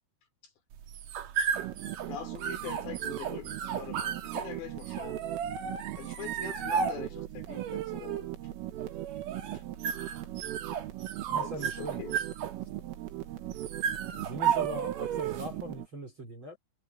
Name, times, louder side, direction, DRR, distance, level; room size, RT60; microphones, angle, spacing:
sound 1, 0.7-15.6, right 8 dB, 60° right, 2.4 m, -34 dB
sound 2, 1.5-15.9, right 15 dB, 85° right, 4.2 m, -40 dB
voice 1, 2.0-5.2 5.9-8.3 9.5-9.6 11.4-11.5 11.8-12.2, left 10 dB, 60° left, 5.0 m, -43 dB
voice 2, 11.3-12.0 14.1-16.6, right 1 dB, 25° right, 3.8 m, -40 dB
omnidirectional pair, 5.9 m